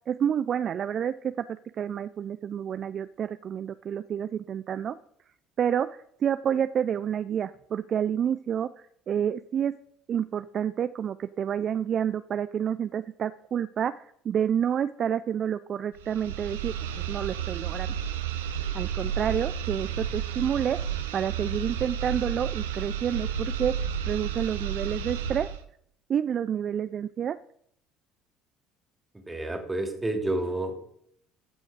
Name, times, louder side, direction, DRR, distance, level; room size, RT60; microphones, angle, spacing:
voice 1, 0.1-1.5 1.8-5.0 5.6-9.8 10.1-17.9 18.7-20.8 21.1-23.7 24.1-25.5 26.1-27.4, right 8 dB, 45° right, 13 dB, 0.4 m, -29 dB
sound 1, 16.0-25.6, right 8 dB, 75° right, 0.9 m, -32 dB
voice 2, 29.1-30.8, right 1 dB, 15° right, 4 dB, 2.5 m, -30 dB
14.0 x 6.3 x 4.8 m, 0.70 s
figure-of-eight pair, 60°, 0 cm